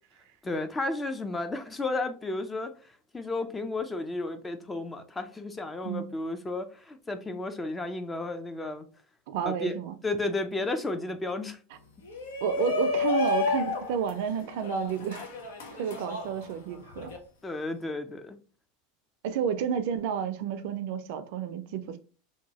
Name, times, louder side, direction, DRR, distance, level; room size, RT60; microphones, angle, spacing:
voice 1, 0.4-2.7 3.1-8.8 9.4-11.6 15.8-15.9 17.4-18.4, left 2 dB, 15° left, 0.4 m, -33 dB
voice 2, 9.3-10.0 12.4-15.3 15.7-17.1 19.2-22.0, right 8 dB, 65° right, 0.4 m, -31 dB
Shout, 12.0-17.2, left 3 dB, 80° left, 0.6 m, -31 dB
2.8 x 2.2 x 2.8 m
hypercardioid pair, 95°, 0 cm